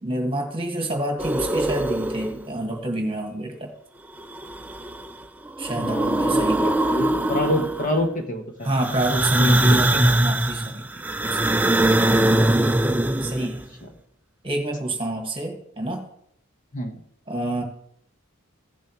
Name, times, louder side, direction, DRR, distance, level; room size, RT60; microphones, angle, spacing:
voice 1, 0.0-3.7 5.6-6.7 8.6-11.0 11.3-11.6 13.1-13.6 14.4-16.1 17.3-17.6, right 1 dB, 25° right, 3 dB, 1.6 m, -27 dB
sound 1, 1.2-2.5 4.2-5.1 5.5-8.0 8.8-13.6, right 1 dB, 10° right, 0.4 m, -22 dB
voice 2, 5.8-8.7 9.4-9.8 13.4-13.5 16.7-17.0, equal, 40° left, 4 dB, 1.2 m, -27 dB
16.0 x 7.1 x 3.0 m, 0.68 s
head